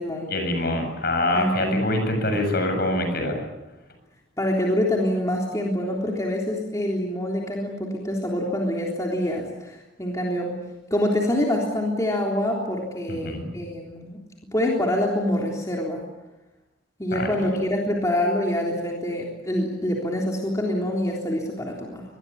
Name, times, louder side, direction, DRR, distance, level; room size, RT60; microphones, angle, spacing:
voice 1, 0.3-3.4 13.1-13.5 17.1-17.5, left 1 dB, 50° left, 5 dB, 7.4 m, -25 dB
voice 2, 1.3-1.8 4.4-10.5 10.9-14.2 14.5-16.0 17.0-22.0, left 1 dB, 15° left, -2 dB, 3.6 m, -25 dB
25.5 x 21.5 x 8.7 m, 1.0 s
head